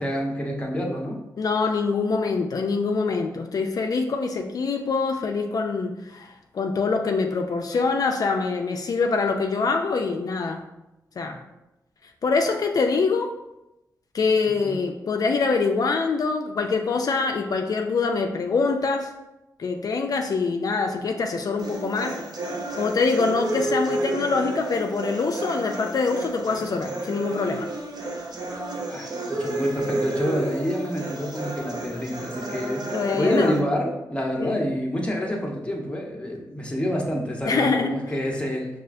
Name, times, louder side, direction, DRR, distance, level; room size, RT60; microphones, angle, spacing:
voice 1, 0.0-1.2 14.6-14.8 28.5-28.6 28.9-38.8, equal, 15° left, -1 dB, 0.8 m, -28 dB
voice 2, 1.4-10.6 11.2-11.4 12.2-13.3 14.1-19.1 19.6-22.2 22.8-27.7 32.9-33.6 34.4-34.6 37.5-38.0, left 4 dB, 60° left, 4 dB, 0.3 m, -24 dB
sound 1, 21.6-33.6, right 2 dB, 70° right, 0.6 m, -31 dB
5.3 x 2.4 x 2.5 m, 0.94 s
cardioid pair, 60°, 7 cm